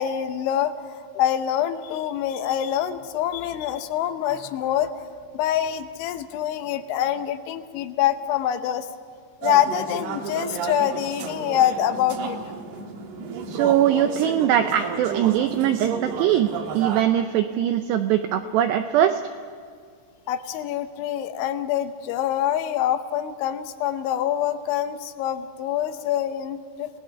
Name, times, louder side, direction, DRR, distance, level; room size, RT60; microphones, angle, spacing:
voice 1, 0.0-4.9 5.3-8.9 9.4-12.4 20.3-26.9, left 10 dB, 75° left, 10 dB, 3.1 m, -25 dB
sound 1, 9.4-17.0, right 6 dB, 65° right, 3.1 m, -32 dB
voice 2, 13.5-19.2, right 11 dB, 90° right, 8 dB, 2.4 m, -21 dB
30.0 x 19.5 x 5.8 m, 2.1 s
omnidirectional pair, 5.8 m